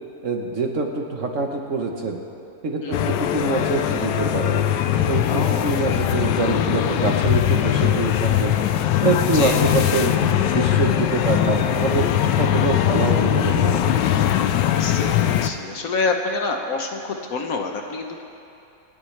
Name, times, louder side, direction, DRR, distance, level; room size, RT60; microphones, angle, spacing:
voice 1, 0.2-2.2 2.6-4.6 5.0-8.5 9.0-10.1 10.5-13.9, right 3 dB, 50° right, 2 dB, 1.2 m, -25 dB
voice 2, 2.8-3.2 5.3-5.7 9.3-9.6 12.8-13.0 14.7-18.2, left 3 dB, 60° left, 3 dB, 1.2 m, -27 dB
sound 1, 2.9-15.5, left 11 dB, 85° left, 1.3 m, -21 dB
26.5 x 10.0 x 3.3 m, 2.8 s
omnidirectional pair, 1.9 m